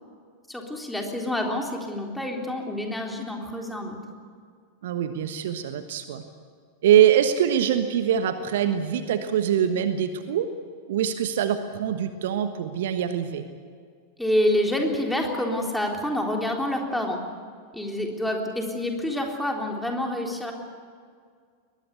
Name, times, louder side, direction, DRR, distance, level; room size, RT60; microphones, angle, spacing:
voice 1, 0.5-4.0 14.2-17.2 17.7-20.5, left 1 dB, 5° left, 1 dB, 3.8 m, -27 dB
voice 2, 4.8-6.2 6.8-10.5 10.9-13.4, right 9 dB, 55° right, 9 dB, 1.3 m, -23 dB
22.5 x 20.5 x 8.4 m, 2.1 s
figure-of-eight pair, 90°, 0 cm